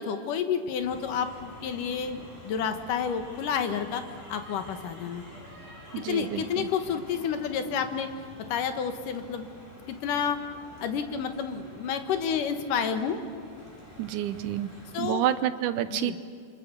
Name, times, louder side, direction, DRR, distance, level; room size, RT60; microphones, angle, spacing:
voice 1, 0.0-5.2 6.0-8.1 8.5-9.5 9.9-10.4 10.8-13.2 14.9-15.3 15.9-16.2, left 7 dB, 80° left, 7 dB, 3.0 m, -30 dB
sound 1, 0.8-15.0, equal, 20° left, 7.5 m, -48 dB
voice 2, 5.9-6.4 14.0-14.7 15.0-16.2, right 12 dB, 75° right, 12 dB, 2.3 m, -28 dB
29.0 x 25.0 x 6.9 m, 2.2 s
omnidirectional pair, 3.8 m